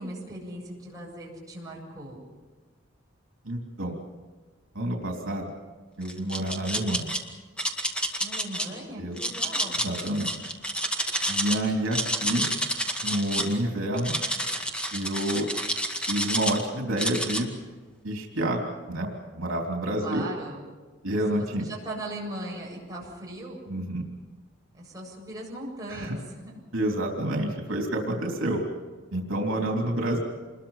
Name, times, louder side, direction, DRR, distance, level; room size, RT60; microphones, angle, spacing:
voice 1, 0.0-2.2 8.2-9.9 20.0-20.6 21.4-23.6 24.7-26.5, right 1 dB, 20° right, -3 dB, 7.7 m, -38 dB
voice 2, 3.4-4.0 4.7-5.5 6.0-7.2 8.9-9.2 9.8-10.4 11.3-12.5 13.0-14.2 14.9-15.5 16.1-17.5 18.0-18.6 18.9-20.2 21.0-21.7 23.7-24.0 25.9-26.1 26.7-28.6 29.1-30.2, right 1 dB, 80° right, 1 dB, 3.4 m, -28 dB
sound 1, 6.0-7.2 7.6-8.7 9.2-11.6 11.8-13.5 14.0-16.6 17.0-17.4, equal, 5° left, 2.1 m, -29 dB
27.5 x 22.0 x 5.8 m, 1.3 s
head